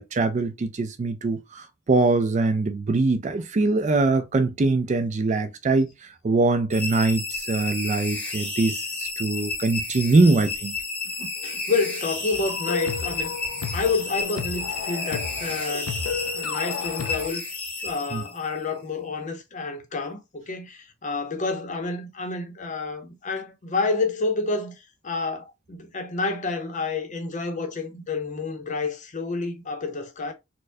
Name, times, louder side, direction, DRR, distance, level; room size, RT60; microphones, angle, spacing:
voice 1, 0.0-5.9 6.2-10.7 11.2-11.3 18.1-18.2, right 3 dB, 35° right, 0.3 m, -23 dB
sound 1, 6.7-18.6, left 3 dB, 10° left, 0.9 m, -32 dB
voice 2, 11.4-13.3 13.7-16.0 16.3-17.4 17.8-24.7 25.0-30.3, left 3 dB, 35° left, 0.7 m, -29 dB
sound 2, 12.3-17.3, left 5 dB, 85° left, 0.4 m, -33 dB
4.3 x 2.1 x 2.6 m
head